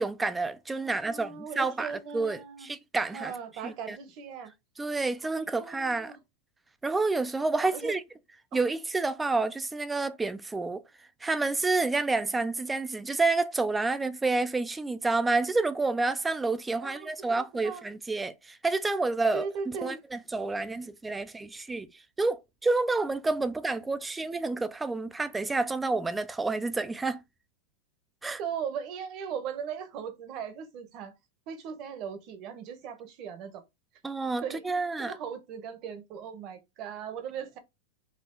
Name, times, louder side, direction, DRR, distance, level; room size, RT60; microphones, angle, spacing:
voice 1, 0.0-3.3 3.6-4.0 4.8-6.1 6.8-8.0 8.5-10.8 11.2-21.9 22.2-27.2 28.2-28.4 34.0-35.1, right 3 dB, 10° right, 0.3 m, -29 dB
voice 2, 0.8-2.7 3.1-4.5 5.2-6.2 7.6-7.9 8.5-8.7 16.8-17.8 19.3-20.0 28.4-31.2 31.5-33.6 34.4-34.6 35.0-37.6, right 7 dB, 40° right, 0.9 m, -38 dB
4.2 x 2.4 x 3.7 m
supercardioid pair, 145°, 0 cm